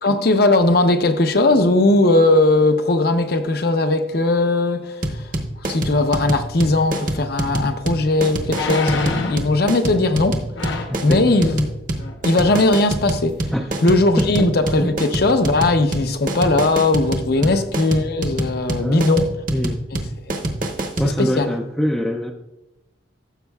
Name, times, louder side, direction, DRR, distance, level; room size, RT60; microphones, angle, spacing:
voice 1, 0.0-5.0 5.6-10.4 11.0-11.7 12.2-13.4 13.8-19.3 19.9-20.0 21.2-21.5, left 2 dB, 55° left, 0.7 m, -18 dB
sound 1, 5.0-21.1, right 1 dB, 45° right, 0.9 m, -25 dB
sound 2, 7.5-7.6 8.5-9.5 10.6-11.0 12.0-12.2 12.4-12.8 13.3-13.4, left 3 dB, 85° left, 1.0 m, -27 dB
voice 2, 10.9-11.3 13.5-13.7 14.2-14.5 14.8-15.0 17.4-17.6 18.7-19.2 19.5-19.8 21.0-22.3, equal, 5° left, 0.4 m, -24 dB
15.0 x 7.2 x 2.3 m
head